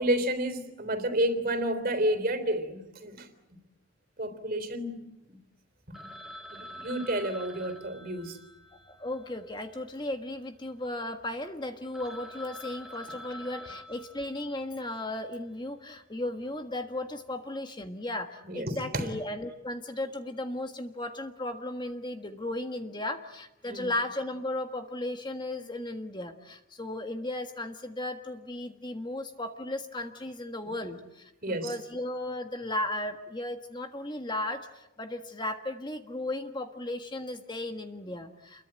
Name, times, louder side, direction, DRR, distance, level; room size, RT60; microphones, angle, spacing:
voice 1, 0.0-3.3 4.2-5.4 6.0-6.1 6.5-8.4 18.4-19.1 23.7-23.9 30.8-30.9 31.4-31.8, right 1 dB, 45° right, 3.5 m, -30 dB
Telephone, 5.9-10.3 10.5-10.6 11.2-11.3 11.6-11.7 11.9-14.9, equal, ahead, 2.2 m, -47 dB
voice 2, 8.8-38.6, left 1 dB, 20° left, 1.5 m, -35 dB
29.0 x 22.5 x 9.0 m
head